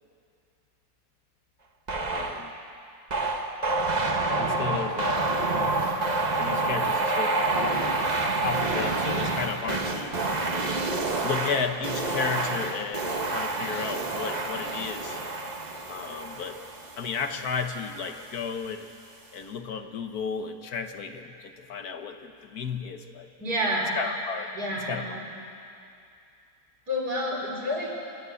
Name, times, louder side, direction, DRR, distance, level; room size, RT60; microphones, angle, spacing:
voice 1, 1.9-2.5 4.4-5.6 6.1-8.1 8.4-10.2 11.2-15.2 15.9-16.6 17.0-18.9 19.3-23.3 23.9-24.5 24.9-25.2, left 6 dB, 65° left, 6 dB, 1.5 m, -33 dB
sound 1, 1.9-2.5 3.1-17.8, right 3 dB, 30° right, 1.1 m, -28 dB
voice 2, 23.4-23.9 24.5-25.2 26.9-28.0, equal, 65° right, -4 dB, 5.3 m, -29 dB
28.0 x 12.0 x 8.3 m, 2.6 s
omnidirectional pair, 1.8 m